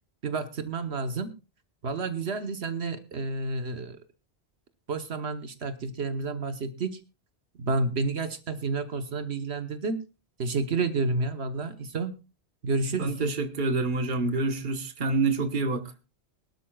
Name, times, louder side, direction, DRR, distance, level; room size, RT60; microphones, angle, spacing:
voice 1, 0.2-1.3 1.8-4.0 4.9-7.0 7.6-10.0 10.4-12.1 12.6-13.2, right 3 dB, 75° right, 8 dB, 1.3 m, -30 dB
voice 2, 13.0-15.8, right 3 dB, 50° right, 8 dB, 1.3 m, -27 dB
22.5 x 12.5 x 2.3 m, 0.30 s
omnidirectional pair, 1.1 m